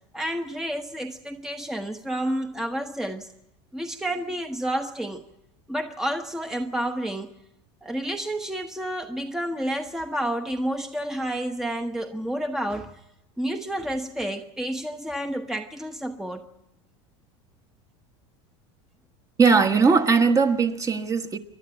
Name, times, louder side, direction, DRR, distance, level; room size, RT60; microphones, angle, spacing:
voice 1, 0.1-3.3 3.7-5.2 5.7-7.3 7.8-12.9 13.4-16.4, right 1 dB, 5° right, 1.0 m, -30 dB
voice 2, 19.4-21.4, right 5 dB, 20° right, 1.4 m, -19 dB
27.5 x 11.5 x 9.2 m
supercardioid pair, 115°, 15 cm